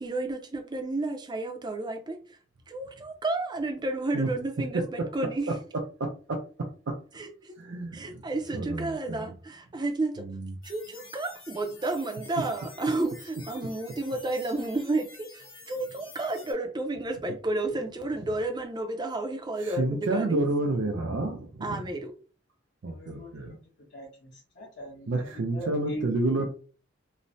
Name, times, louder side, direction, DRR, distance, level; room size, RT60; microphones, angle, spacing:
voice 1, 0.0-2.2 2.7-5.5 7.1-7.5 7.9-10.2 10.6-20.4 21.6-22.1, right 2 dB, 25° right, 4 dB, 0.5 m, -31 dB
voice 2, 7.6-8.2 8.5-9.3 10.2-10.5 19.6-21.8 22.8-23.6 25.1-26.5, right 2 dB, 80° right, 1 dB, 0.5 m, -29 dB
sound 1, 10.6-16.5, left 4 dB, 85° left, 1.1 m, -49 dB
voice 3, 22.9-23.5 23.9-26.1, equal, 60° left, -7 dB, 1.0 m, -41 dB
3.1 x 2.0 x 2.6 m, 0.38 s
head